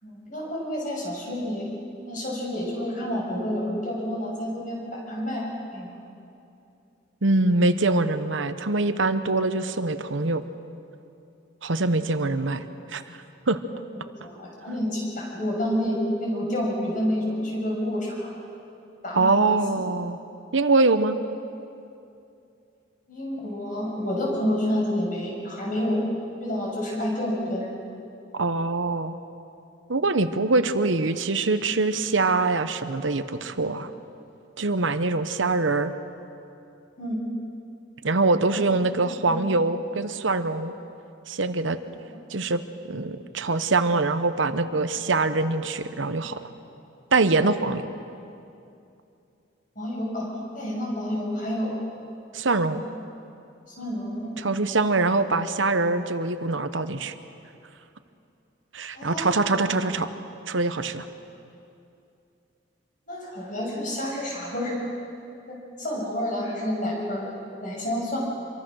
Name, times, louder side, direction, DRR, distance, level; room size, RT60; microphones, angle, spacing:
voice 1, 0.0-1.7 2.1-5.5 5.7-5.9 12.2-12.5 14.2-18.3 19.0-19.6 23.1-26.0 26.4-27.8 37.0-37.2 38.5-38.6 39.2-39.4 42.1-42.2 49.8-50.3 50.5-51.8 52.6-52.9 53.7-54.3 59.0-59.5 63.1-64.8 65.5-67.3 67.6-68.2, equal, 45° left, -2 dB, 7.1 m, -29 dB
voice 2, 7.2-10.4 11.6-12.6 12.9-13.0 13.5-13.6 19.1-20.2 20.5-21.2 28.3-29.2 29.9-33.9 34.6-35.9 38.0-40.7 41.3-41.8 42.3-42.6 42.9-46.4 47.1-47.9 52.3-52.8 54.4-57.1 58.7-60.1 60.5-61.1, right 3 dB, 80° right, 10 dB, 1.1 m, -23 dB
27.0 x 23.0 x 6.4 m, 2.7 s
head